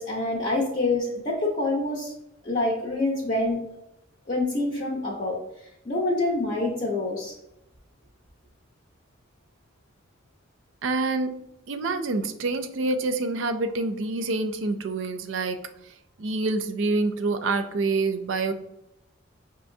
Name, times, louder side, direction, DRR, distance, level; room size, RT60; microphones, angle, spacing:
voice 1, 0.0-2.1 2.4-3.6 4.3-5.4 5.8-7.3, left 2 dB, 35° left, -4 dB, 0.7 m, -26 dB
voice 2, 10.8-15.6 16.2-18.5, right 3 dB, 65° right, 7 dB, 0.4 m, -27 dB
5.8 x 2.8 x 2.6 m, 0.83 s
head